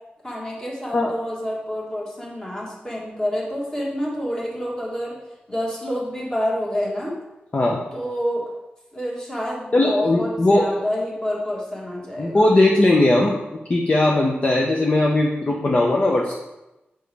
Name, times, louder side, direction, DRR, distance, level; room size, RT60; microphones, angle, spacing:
voice 1, 0.2-5.2 5.5-7.2 7.9-8.4 8.9-12.4, equal, 15° left, -4 dB, 1.6 m, -28 dB
voice 2, 7.5-7.8 9.7-10.7 12.2-13.4 13.7-16.3, left 2 dB, 35° left, -1 dB, 0.6 m, -18 dB
7.4 x 5.1 x 3.3 m, 0.98 s
wide cardioid pair, 145°, 4 cm